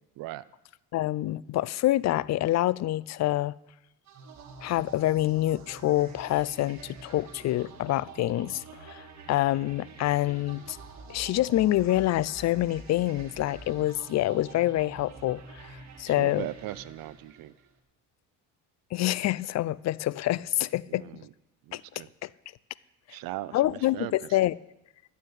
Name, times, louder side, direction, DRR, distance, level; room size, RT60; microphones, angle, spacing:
voice 1, 0.9-3.5 4.6-10.8 11.1-16.4 18.9-21.0 21.7-21.8 22.2-22.3 23.5-24.5, left 15 dB, 50° left, 0.4 m, -27 dB
sound 1, 4.1-17.7, right 4 dB, 50° right, 2.0 m, -47 dB
voice 2, 16.0-17.5 20.9-21.3 21.6-22.1 23.1-24.4, right 15 dB, 70° right, 0.6 m, -39 dB
12.0 x 7.2 x 9.5 m
cardioid pair, 125°, 36 cm